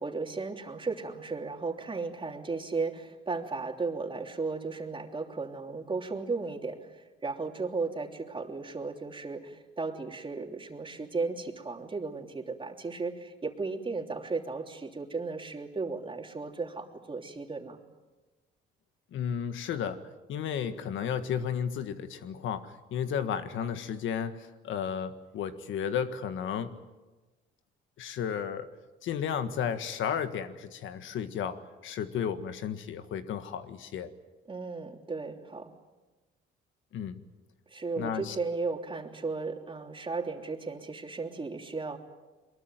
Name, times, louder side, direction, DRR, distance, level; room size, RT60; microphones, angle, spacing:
voice 1, 0.0-17.8 34.5-35.7 37.7-42.0, right 4 dB, 25° right, 3 dB, 3.3 m, -35 dB
voice 2, 19.1-20.0 20.3-26.8 28.0-28.7 29.0-34.1 36.9-37.2 38.0-38.4, left 8 dB, 80° left, 10 dB, 1.7 m, -33 dB
23.0 x 22.0 x 9.2 m, 1.2 s
cardioid pair, 90°, 20 cm